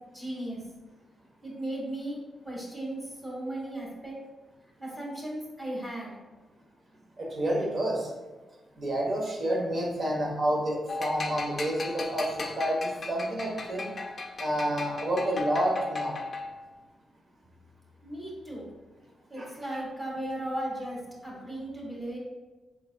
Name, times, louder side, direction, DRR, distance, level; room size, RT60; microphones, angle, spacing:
voice 1, 0.1-0.6 1.4-2.2 2.4-4.2 4.8-6.2 18.0-18.7 19.3-22.2, right 1 dB, 15° right, -4 dB, 1.3 m, -36 dB
voice 2, 7.2-8.1 8.8-12.3 12.6-13.9 14.4-16.2 19.4-19.5, right 1 dB, 40° right, -1 dB, 1.0 m, -29 dB
sound 1, 10.9-16.7, left 3 dB, 35° left, 0.5 m, -37 dB
4.5 x 3.8 x 2.2 m, 1.2 s
cardioid pair, 115°, 0 cm